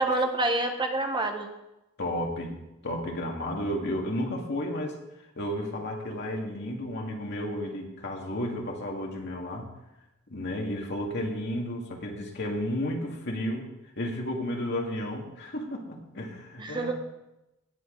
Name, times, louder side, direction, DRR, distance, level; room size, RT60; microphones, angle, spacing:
voice 1, 0.0-1.5 16.6-17.0, right 2 dB, 20° right, 5 dB, 1.2 m, -27 dB
voice 2, 2.0-2.5 2.8-5.0 5.4-9.7 10.3-13.7 14.0-17.0, left 1 dB, 55° left, 0 dB, 2.2 m, -32 dB
17.0 x 8.4 x 3.9 m, 0.93 s
head